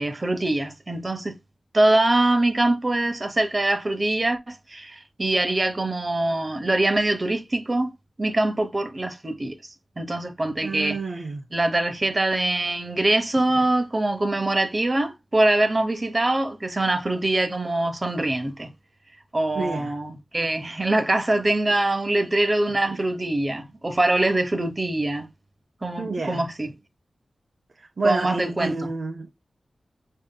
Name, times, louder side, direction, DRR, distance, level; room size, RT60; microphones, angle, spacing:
voice 1, 0.0-1.3 1.7-7.9 8.2-9.6 10.0-11.0 11.5-18.7 19.3-25.3 25.8-26.7 28.0-28.9, right 2 dB, 30° right, 0.9 m, -23 dB
voice 2, 10.6-11.4 13.5-13.7 19.6-19.9 22.9-23.0 26.0-26.4 27.8-29.3, right 3 dB, 60° right, 0.6 m, -28 dB
6.2 x 3.7 x 2.2 m
wide cardioid pair, 75°, 0 cm